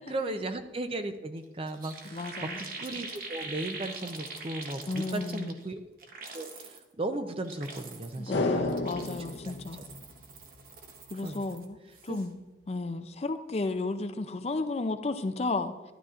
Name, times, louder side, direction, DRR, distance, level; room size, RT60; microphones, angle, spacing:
voice 1, 0.1-5.8 6.3-6.7 7.0-8.7 11.2-11.4 12.1-12.2, right 2 dB, 30° right, 8 dB, 0.5 m, -36 dB
sound 1, 1.4-1.5 1.7-5.7 6.0-6.8 7.3-8.3 8.6-11.6 11.9-12.3, right 3 dB, 50° right, 0.9 m, -43 dB
voice 2, 2.1-2.6 4.9-5.6 8.2-9.8 11.1-11.8 12.0-12.3 12.7-15.7, left 3 dB, 35° left, 9 dB, 0.4 m, -33 dB
sound 2, 8.3-10.8 11.1-11.2, left 2 dB, 80° left, 0.7 m, -32 dB
12.0 x 11.5 x 2.5 m, 1.1 s
head